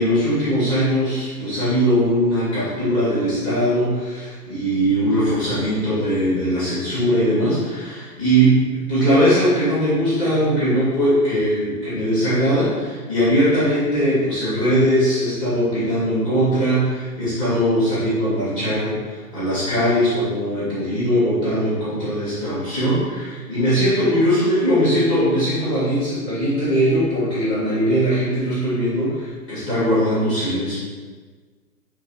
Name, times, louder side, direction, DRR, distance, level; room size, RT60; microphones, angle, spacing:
voice 1, 0.0-30.7, equal, 20° left, -12 dB, 1.8 m, -20 dB
6.7 x 3.4 x 4.3 m, 1.5 s
figure-of-eight pair, 130°, 47 cm